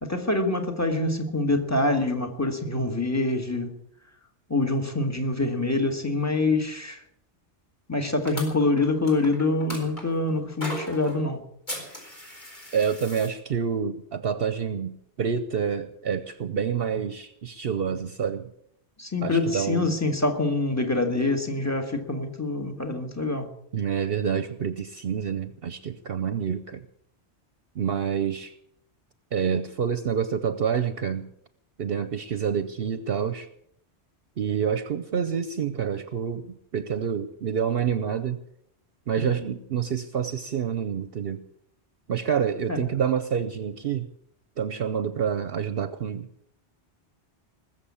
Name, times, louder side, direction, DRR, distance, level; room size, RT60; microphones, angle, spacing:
voice 1, 0.0-3.8 4.5-7.0 7.9-11.4 19.0-23.5 39.2-39.5 42.7-42.9, left 2 dB, 15° left, 4 dB, 1.9 m, -25 dB
sound 1, 8.2-10.0 10.6-11.2 11.7-13.3, equal, 40° left, 4.6 m, -37 dB
voice 2, 12.7-18.5 19.2-20.0 23.7-26.8 27.8-28.5 29.3-31.3 31.8-33.5 34.4-38.4 39.1-41.4 42.1-44.1 44.6-46.3, right 7 dB, 60° right, 12 dB, 0.9 m, -28 dB
20.5 x 7.2 x 8.5 m, 0.73 s
omnidirectional pair, 1.2 m